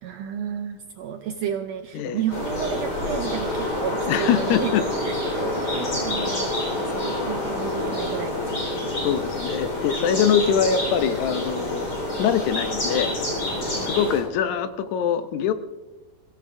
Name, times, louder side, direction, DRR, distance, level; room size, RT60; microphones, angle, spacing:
voice 1, 0.0-4.7 5.0-9.0 13.6-14.0, right 9 dB, 80° right, 6 dB, 1.5 m, -32 dB
sound 1, 2.3-14.2, left 1 dB, 45° left, 5.2 m, -27 dB
voice 2, 4.1-4.8 9.0-13.1 13.8-15.5, left 8 dB, 75° left, 10 dB, 1.9 m, -23 dB
23.0 x 16.0 x 2.6 m, 1.1 s
omnidirectional pair, 3.7 m